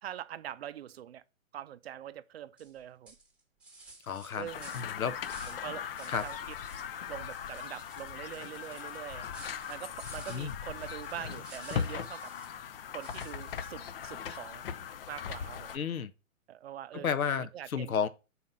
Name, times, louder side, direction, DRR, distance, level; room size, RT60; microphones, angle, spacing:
voice 1, 0.0-1.2 1.5-3.2 4.4-4.7 5.0-5.2 5.5-6.5 7.1-9.3 9.7-12.3 12.9-14.6 15.1-15.7 16.5-18.0, right 11 dB, 50° right, 0.5 m, -44 dB
sound 1, 2.6-2.8 3.1-5.7 6.0-6.9 7.2-12.6 13.0-13.9, right 3 dB, 5° right, 1.1 m, -54 dB
voice 2, 4.0-4.5 4.7-5.2 6.1-6.3 10.3-10.5 15.7-16.1 16.9-18.1, left 7 dB, 85° left, 0.7 m, -32 dB
sound 2, 4.5-15.8, left 8 dB, 45° left, 0.5 m, -39 dB
5.8 x 4.2 x 5.3 m
figure-of-eight pair, 125°, 41 cm